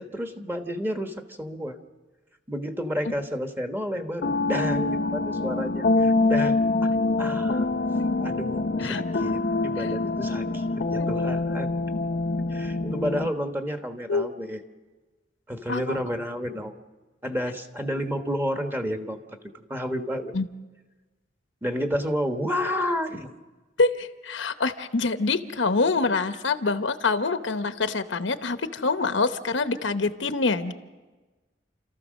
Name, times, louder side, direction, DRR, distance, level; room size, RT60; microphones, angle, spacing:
voice 1, 0.0-1.8 2.5-6.6 7.2-7.7 8.2-11.7 12.5-14.6 15.5-16.7 17.2-20.3 21.6-23.3, equal, 10° right, 6 dB, 1.3 m, -30 dB
sound 1, 4.2-13.3, left 3 dB, 55° left, 0.7 m, -25 dB
voice 2, 23.8-30.7, left 3 dB, 85° left, 10 dB, 1.0 m, -25 dB
29.5 x 14.0 x 6.4 m, 1.2 s
head